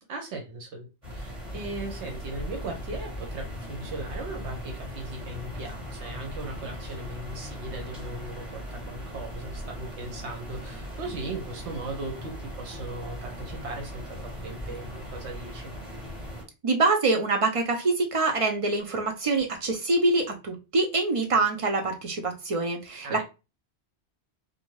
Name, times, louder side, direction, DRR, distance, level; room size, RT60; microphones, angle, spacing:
voice 1, 0.1-15.7 23.0-23.2, right 2 dB, 80° right, 3 dB, 1.0 m, -38 dB
sound 1, 1.0-16.4, equal, 35° right, 1.4 m, -38 dB
voice 2, 16.6-23.2, right 3 dB, 55° right, 3 dB, 0.4 m, -25 dB
2.6 x 2.2 x 3.0 m, 0.28 s
omnidirectional pair, 1.1 m